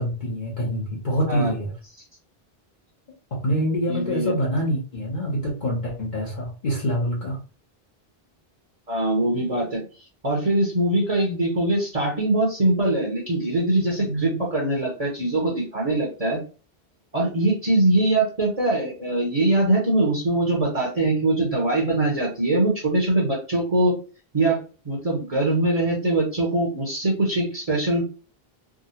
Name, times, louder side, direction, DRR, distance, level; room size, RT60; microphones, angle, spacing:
voice 1, 0.0-1.7 3.3-7.4 14.0-14.4, equal, 50° left, -4 dB, 1.1 m, -26 dB
voice 2, 3.8-4.4 8.9-9.8 10.2-16.4 17.1-24.0 24.3-24.6 24.8-28.0, right 2 dB, 40° right, -2 dB, 1.0 m, -22 dB
3.7 x 2.3 x 2.7 m, 0.36 s
omnidirectional pair, 1.0 m